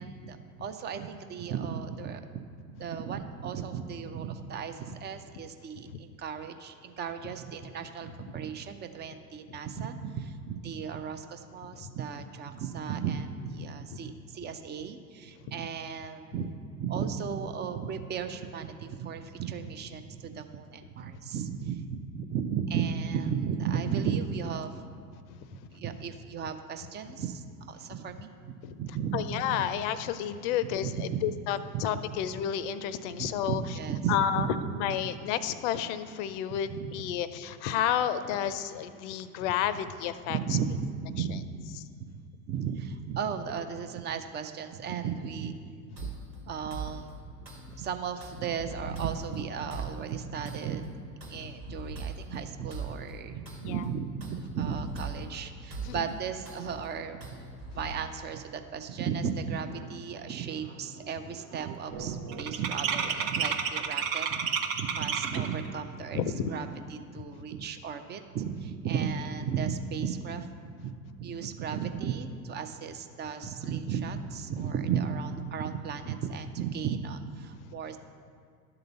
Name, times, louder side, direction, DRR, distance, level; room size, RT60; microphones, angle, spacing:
voice 1, 0.0-2.2 2.7-16.5 16.8-24.7 25.7-29.7 30.8-31.3 31.7-31.8 33.2-34.5 36.7-36.9 40.3-41.6 42.0-42.2 42.5-45.6 46.5-47.1 47.8-50.8 51.3-57.2 57.7-66.2 66.5-70.5 70.8-70.9 71.2-78.0, right 7 dB, 20° right, 8 dB, 0.5 m, -35 dB
voice 2, 29.1-33.6 34.1-34.5 34.7-40.4 46.0-46.1 51.8-51.9 53.6-53.8 55.8-56.0 66.1-66.5, left 10 dB, 50° left, 13 dB, 0.6 m, -31 dB
sound 1, 46.0-57.9, right 3 dB, 85° right, 1.8 m, -42 dB
sound 2, 59.9-60.0 60.3-60.7 61.0-65.6, right 6 dB, 55° right, 0.9 m, -31 dB
11.5 x 3.9 x 6.8 m, 2.1 s
hypercardioid pair, 85°, 48 cm